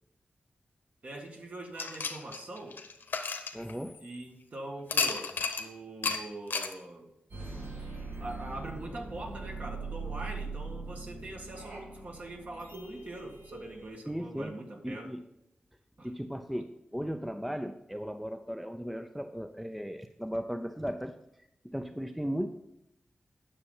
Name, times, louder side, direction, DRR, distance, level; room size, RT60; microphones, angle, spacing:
voice 1, 1.0-2.8 4.0-7.1 8.2-15.1 16.0-16.1, right 2 dB, 45° right, 2 dB, 1.7 m, -43 dB
sound 1, 1.8-4.2 4.9-5.7 6.0-6.2 6.5-6.7, left 4 dB, 80° left, 1.1 m, -32 dB
voice 2, 3.5-4.0 14.1-14.5 14.8-15.2 16.0-21.1 21.6-22.5, equal, ahead, 7 dB, 0.5 m, -36 dB
sound 2, 7.3-13.9, right 3 dB, 75° right, 2.7 m, -41 dB
9.8 x 6.8 x 5.5 m, 0.81 s
wide cardioid pair, 130°, 3 cm